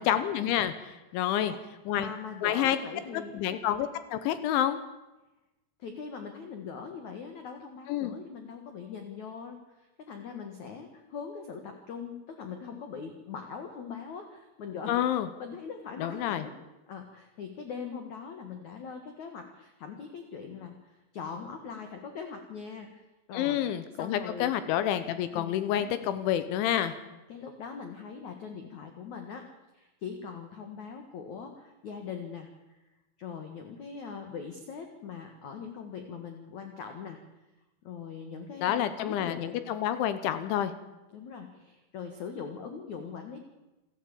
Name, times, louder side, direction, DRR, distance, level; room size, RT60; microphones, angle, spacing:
voice 1, 0.0-1.5 1.9-2.1 2.4-2.8 3.1-4.8 7.9-8.2 14.9-15.3 16.0-16.4 23.3-26.9 38.6-40.7, left 11 dB, 75° left, 12 dB, 3.2 m, -28 dB
voice 2, 1.1-1.6 1.9-3.4 5.8-15.0 15.4-16.5 16.9-23.0 23.3-23.6 24.0-24.6 25.3-26.1 27.3-29.5 29.7-32.8 33.2-37.2 37.8-39.5 41.1-43.4, left 6 dB, 60° left, 5 dB, 2.0 m, -41 dB
28.0 x 12.0 x 8.7 m, 1.0 s
omnidirectional pair, 5.7 m